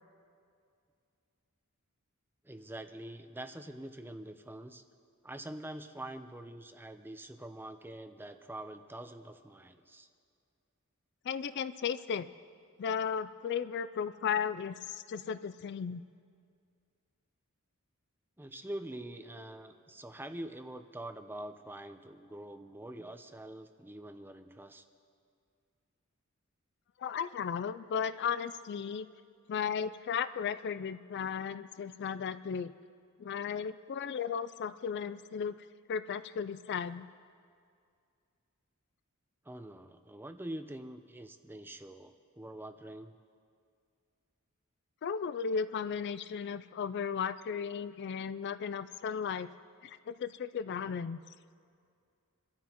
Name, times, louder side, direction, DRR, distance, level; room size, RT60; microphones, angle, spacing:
voice 1, 2.4-4.8 5.2-10.1 18.4-24.8 39.4-43.1, right 1 dB, 10° right, 8 dB, 0.6 m, -45 dB
voice 2, 11.2-12.3 12.8-16.0 27.0-29.1 29.5-32.7 33.2-35.6 35.9-37.1 45.0-49.5 49.8-51.2, left 7 dB, 50° left, 13 dB, 0.4 m, -35 dB
27.0 x 13.0 x 3.0 m, 2.3 s
head